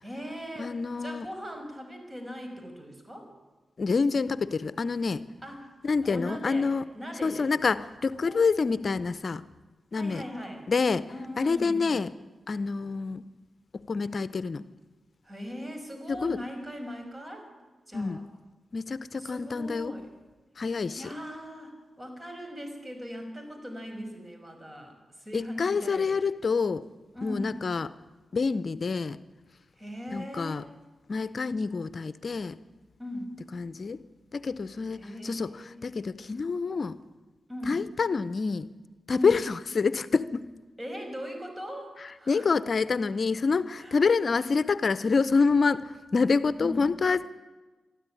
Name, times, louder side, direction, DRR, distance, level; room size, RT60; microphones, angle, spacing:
voice 1, 0.0-3.3 5.4-7.5 8.2-8.5 9.9-10.7 11.1-12.0 15.2-17.5 17.9-18.2 19.2-20.1 21.0-26.2 27.1-27.6 29.8-30.7 33.0-33.3 34.9-35.8 37.5-37.8 39.1-39.4 40.8-42.5 43.8-44.0 46.6-46.9, equal, 25° right, 5 dB, 6.1 m, -40 dB
voice 2, 0.6-1.3 3.8-5.2 5.8-6.8 7.2-9.4 9.9-10.2 10.7-11.0 11.4-12.1 12.5-13.2 13.7-14.6 16.1-16.4 17.9-18.3 18.7-19.9 20.6-21.0 25.3-26.8 27.2-27.9 28.3-29.2 30.1-30.6 31.1-32.6 33.5-34.0 34.3-35.5 35.8-37.0 37.7-38.7 39.1-40.4 42.3-47.3, left 4 dB, 60° left, 16 dB, 0.6 m, -27 dB
22.0 x 13.0 x 10.0 m, 1.2 s
cardioid pair, 45°, 0 cm